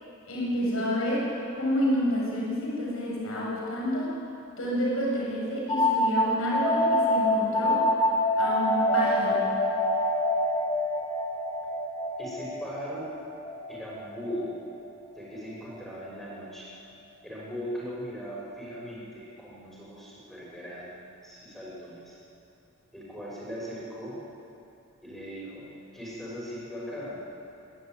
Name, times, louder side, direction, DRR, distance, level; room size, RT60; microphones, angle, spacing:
voice 1, 0.2-1.3 1.6-4.2 4.6-7.9 8.4-9.5, equal, 85° left, -4 dB, 7.2 m, -29 dB
sound 1, 5.7-15.1, left 1 dB, 20° left, 2.0 m, -26 dB
voice 2, 12.2-13.1 13.7-14.5 15.2-16.7 17.2-22.2 22.9-24.2 25.0-25.7 25.9-27.2, equal, ahead, -6 dB, 6.4 m, -39 dB
24.0 x 13.5 x 9.5 m, 2.7 s
head